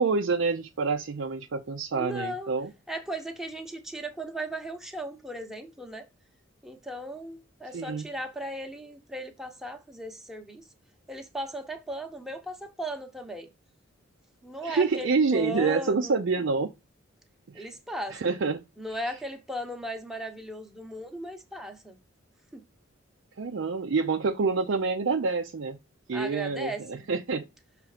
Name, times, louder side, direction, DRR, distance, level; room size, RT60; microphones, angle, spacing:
voice 1, 0.0-2.7 7.7-8.1 14.6-16.7 17.5-17.7 18.1-18.6 23.4-25.8 26.1-27.5, right 4 dB, 60° right, 0.5 m, -27 dB
voice 2, 1.9-2.5 2.9-6.0 6.6-10.6 11.1-13.5 14.4-16.2 17.5-18.2 18.8-22.0 22.5-22.6 26.1-27.1, right 1 dB, ahead, 0.9 m, -37 dB
6.2 x 3.3 x 4.9 m
head